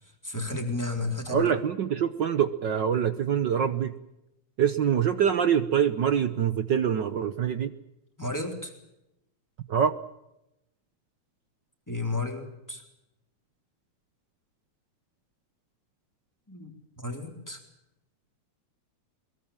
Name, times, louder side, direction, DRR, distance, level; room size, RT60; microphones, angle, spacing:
voice 1, 0.0-1.5 8.2-8.7 11.9-12.8 16.5-17.6, left 2 dB, 5° left, 4 dB, 3.7 m, -33 dB
voice 2, 1.3-3.9 4.6-7.7 9.7-9.9, right 8 dB, 65° right, 11 dB, 1.1 m, -25 dB
22.5 x 22.5 x 7.4 m, 0.88 s
omnidirectional pair, 3.3 m